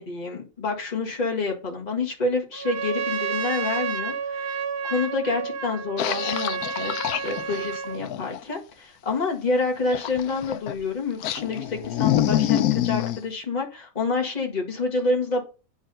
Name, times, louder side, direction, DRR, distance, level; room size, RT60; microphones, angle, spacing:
voice 1, 0.0-4.6 4.8-6.9 7.2-15.4, left 3 dB, 30° left, 0 dB, 1.8 m, -28 dB
Trumpet, 2.5-8.0, right 6 dB, 45° right, 0.8 m, -30 dB
sound 1, 6.0-8.4 9.9-10.8 11.2-13.2, left 12 dB, 90° left, 1.1 m, -26 dB
8.6 x 4.1 x 5.4 m, 0.33 s
omnidirectional pair, 1.5 m